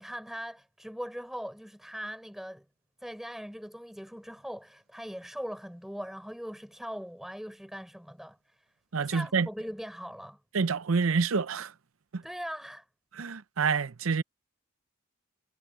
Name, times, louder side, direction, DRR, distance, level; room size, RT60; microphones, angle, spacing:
voice 1, 0.0-2.6 3.0-8.4 9.0-10.4 12.2-12.8, equal, ahead, 6.8 m, -40 dB
voice 2, 8.9-9.5 10.5-11.7 12.1-12.2 13.2-14.2, right 5 dB, 80° right, 0.7 m, -27 dB
head